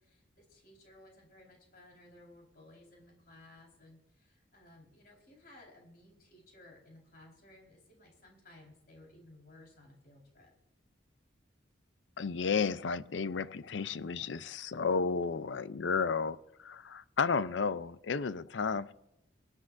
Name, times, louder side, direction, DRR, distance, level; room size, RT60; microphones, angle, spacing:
voice 1, 0.0-10.5, left 1 dB, 50° left, 4.3 m, -58 dB
voice 2, 12.2-18.9, left 5 dB, 75° left, 0.5 m, -32 dB
23.5 x 9.9 x 2.6 m
head